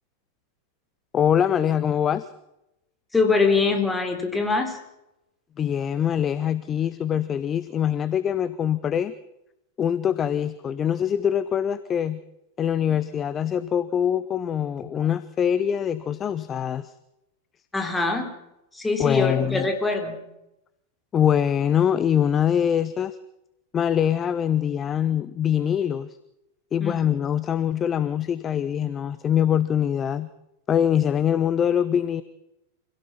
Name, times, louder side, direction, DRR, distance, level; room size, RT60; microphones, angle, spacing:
voice 1, 1.1-2.3 5.6-9.1 9.8-12.2 12.6-16.9 19.0-19.7 21.1-23.2 23.7-26.2 26.7-30.3 30.7-32.2, left 9 dB, 25° left, 15 dB, 0.8 m, -23 dB
voice 2, 3.1-4.8 14.9-15.1 17.7-18.3 18.7-20.2 26.8-27.0, left 3 dB, 10° left, 4 dB, 3.7 m, -23 dB
26.0 x 17.0 x 5.9 m, 0.87 s
figure-of-eight pair, 90°, 0 cm